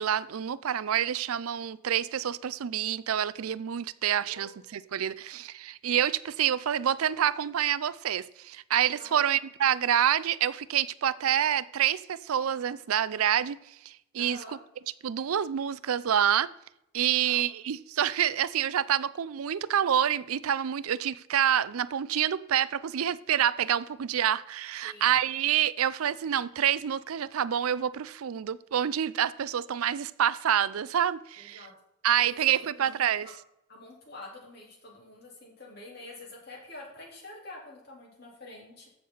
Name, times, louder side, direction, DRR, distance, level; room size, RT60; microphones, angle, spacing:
voice 1, 0.0-14.4 15.0-16.5 16.9-31.7 32.0-33.3, right 9 dB, 80° right, 0.4 m, -27 dB
voice 2, 4.2-4.6 9.0-9.3 14.2-14.6 17.1-17.4 24.8-25.2 31.4-31.7 32.6-32.8 33.7-38.9, left 2 dB, 50° left, 3.7 m, -47 dB
14.0 x 6.8 x 4.0 m
head